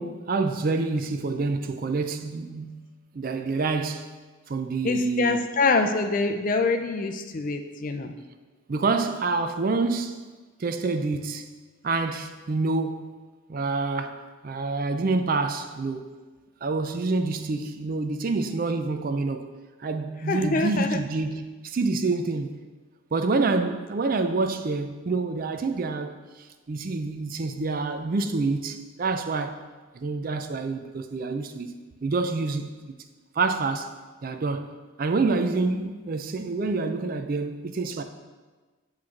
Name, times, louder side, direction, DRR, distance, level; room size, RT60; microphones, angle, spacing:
voice 1, 0.0-4.1 4.5-5.4 8.7-10.2 10.6-11.5 11.8-13.2 13.5-16.1 16.6-19.5 19.8-22.6 23.1-26.1 26.4-29.6 29.9-31.7 32.0-33.0 33.4-33.9 34.2-34.7 35.0-38.0, right 3 dB, 40° right, 0.4 m, -27 dB
voice 2, 4.8-8.1 20.3-21.0, left 3 dB, 40° left, 0.4 m, -25 dB
8.3 x 3.2 x 5.8 m
head